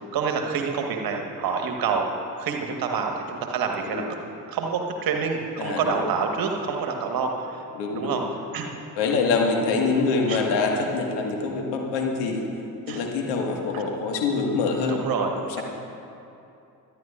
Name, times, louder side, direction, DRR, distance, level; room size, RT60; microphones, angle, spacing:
voice 1, 0.1-2.1 2.4-4.0 4.5-7.6 7.9-8.2 8.5-8.7 10.3-10.4 12.9-13.0 13.7-13.8 14.9-15.3, right 5 dB, 45° right, 3 dB, 1.5 m, -27 dB
voice 2, 5.6-6.1 7.7-8.2 9.0-12.4 12.9-15.0 15.4-15.6, left 4 dB, 55° left, 1 dB, 1.8 m, -25 dB
23.5 x 11.0 x 2.5 m, 2.7 s
figure-of-eight pair, 50°, 49 cm